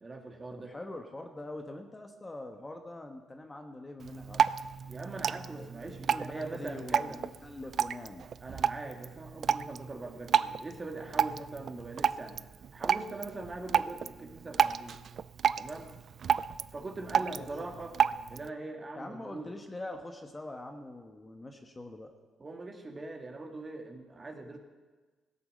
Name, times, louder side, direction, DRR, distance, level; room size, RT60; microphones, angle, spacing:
voice 1, 0.0-0.7 4.9-7.2 8.4-12.4 12.7-15.0 15.6-15.9 16.7-18.0 18.3-19.5 22.4-24.6, right 2 dB, 30° right, 4 dB, 1.8 m, -42 dB
voice 2, 0.5-4.5 5.5-8.2 17.3-17.5 18.9-22.1, left 2 dB, 20° left, 5 dB, 1.3 m, -44 dB
Drip, 4.0-18.5, right 7 dB, 55° right, 0.3 m, -32 dB
17.0 x 8.4 x 6.6 m, 1.3 s
cardioid pair, 90°, 0 cm